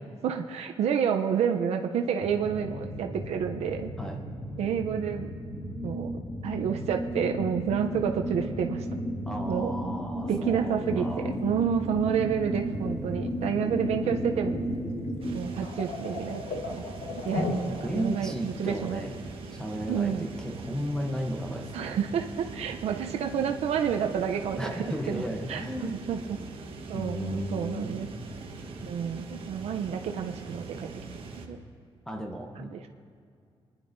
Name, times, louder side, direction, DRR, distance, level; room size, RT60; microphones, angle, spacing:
voice 1, 0.2-3.9 4.6-5.3 5.8-6.1 6.4-8.9 9.5-9.7 10.3-14.7 15.3-19.0 19.9-20.3 21.7-25.2 25.5-26.4 26.9-28.1 28.8-30.9 31.4-31.6 32.6-32.9, right 8 dB, 85° right, 5 dB, 0.6 m, -29 dB
sound 1, 2.2-15.4, equal, 25° left, 2.2 m, -34 dB
voice 2, 9.3-11.3 17.4-19.2 19.5-22.0 24.6-26.0 26.9-28.1 32.1-32.7, equal, 5° left, 3 dB, 0.9 m, -34 dB
sound 2, 10.4-11.5 12.1-12.7 13.3-13.5 13.7-14.0 14.5-14.6 15.0-18.4 18.8-18.9 21.0-21.1 21.5-21.7 22.2-22.4, left 4 dB, 85° left, 1.3 m, -37 dB
sound 3, 15.2-31.5, right 3 dB, 60° right, 1.3 m, -42 dB
23.0 x 10.5 x 2.6 m, 2.3 s
cardioid pair, 130°, 11 cm